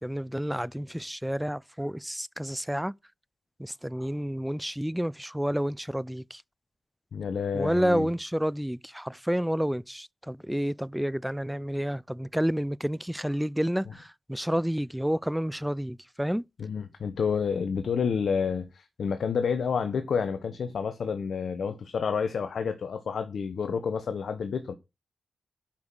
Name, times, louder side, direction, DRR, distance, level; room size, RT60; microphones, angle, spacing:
voice 1, 0.0-2.9 3.6-6.4 7.5-16.4, equal, 5° right, 0.4 m, -30 dB
voice 2, 7.1-8.1 16.6-24.7, left 6 dB, 70° left, 1.0 m, -29 dB
8.8 x 5.9 x 6.2 m
supercardioid pair, 40°, 0 cm